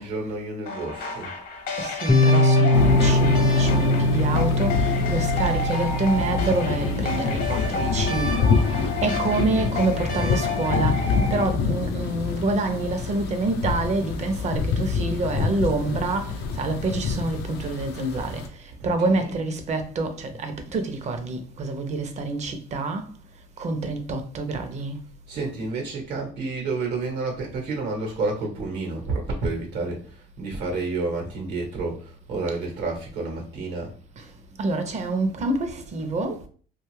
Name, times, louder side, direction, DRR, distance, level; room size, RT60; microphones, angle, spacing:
voice 1, 0.0-1.3 18.8-19.4 25.3-33.9, right 3 dB, 75° right, 1.0 m, -30 dB
sound 1, 0.7-11.4, left 2 dB, 60° left, 0.8 m, -31 dB
voice 2, 1.8-8.4 9.0-11.0 11.3-16.3 16.6-18.4 18.8-23.0 23.6-25.0 34.6-36.4, right 3 dB, 45° right, 0.6 m, -27 dB
Piano, 2.1-9.5, left 1 dB, 15° left, 0.4 m, -23 dB
sound 2, 2.7-18.5, left 5 dB, 75° left, 0.5 m, -26 dB
2.6 x 2.3 x 3.1 m
cardioid pair, 110°, 17 cm